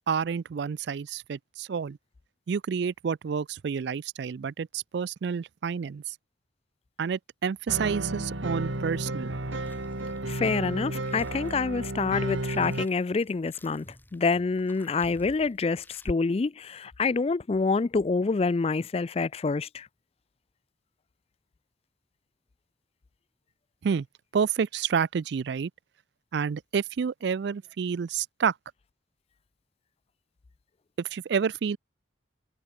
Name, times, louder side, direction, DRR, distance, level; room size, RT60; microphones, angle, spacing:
voice 1, 0.1-2.0 2.5-6.0 7.0-9.3 23.8-24.1 24.3-25.7 26.3-28.5 31.1-31.8, right 6 dB, 60° right, 0.4 m, -29 dB
sound 1, 7.6-16.1, equal, 10° left, 4.2 m, -49 dB
sound 2, 7.7-12.9, right 2 dB, 80° right, 2.3 m, -32 dB
voice 2, 10.3-13.9 14.1-19.9, left 4 dB, 30° left, 0.3 m, -27 dB
head